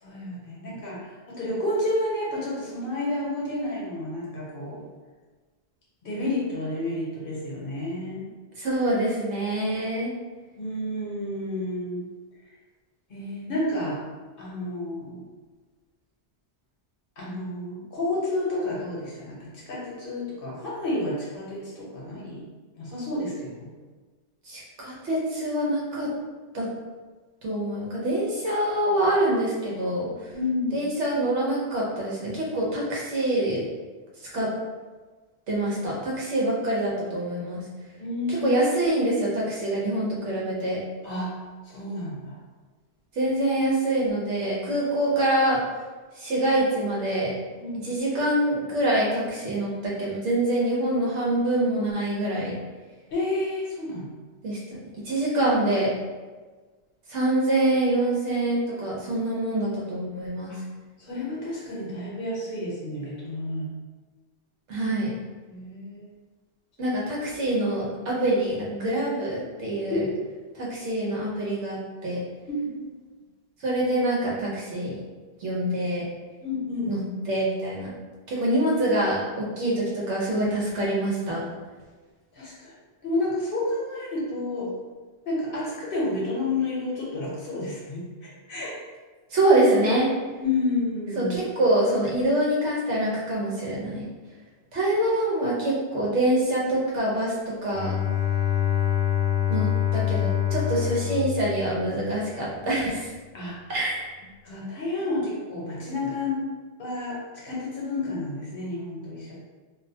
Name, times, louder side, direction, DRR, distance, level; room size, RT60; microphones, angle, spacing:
voice 1, 0.0-1.0 1.3-4.8 6.0-8.2 10.6-12.0 13.1-14.0 14.4-15.2 17.2-22.4 22.8-23.7 30.3-30.8 38.0-38.5 41.0-41.3 41.6-42.4 47.6-47.9 53.1-54.1 60.5-60.6 61.0-63.7 65.5-66.1 68.1-68.2 69.9-70.2 72.5-72.9 76.4-76.9 82.3-82.7 83.0-84.7 85.3-88.7 90.4-91.3 103.3-103.6 104.4-106.4 106.8-107.2 107.4-109.3, left 2 dB, 55° left, -5 dB, 0.9 m, -30 dB
voice 2, 8.6-10.1 24.5-26.1 26.5-26.7 27.4-30.1 30.7-33.6 34.3-34.5 35.5-37.6 38.3-40.8 43.1-45.6 46.2-47.3 47.8-52.6 54.4-54.6 55.0-55.9 57.1-60.5 64.7-65.1 66.8-70.0 70.5-71.8 72.0-72.2 73.6-75.0 75.4-76.0 76.9-77.9 78.3-81.4 89.3-90.1 91.2-94.1 94.7-97.9 99.5-103.1 103.7-104.1, right 1 dB, 90° right, -5 dB, 1.1 m, -25 dB
Bowed string instrument, 97.7-102.4, left 10 dB, 80° left, 0.9 m, -26 dB
2.6 x 2.1 x 2.7 m, 1.3 s
omnidirectional pair, 1.2 m